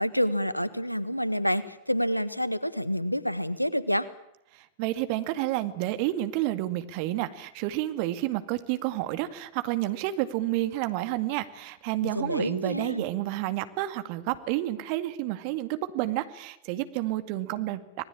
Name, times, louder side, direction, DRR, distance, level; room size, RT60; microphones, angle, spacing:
voice 1, 0.0-4.1 12.0-13.0, equal, 90° left, 16 dB, 1.5 m, -28 dB
voice 2, 4.8-18.1, right 15 dB, 45° right, 10 dB, 2.1 m, -30 dB
26.5 x 20.5 x 8.8 m, 0.81 s
figure-of-eight pair, 90°, 0 cm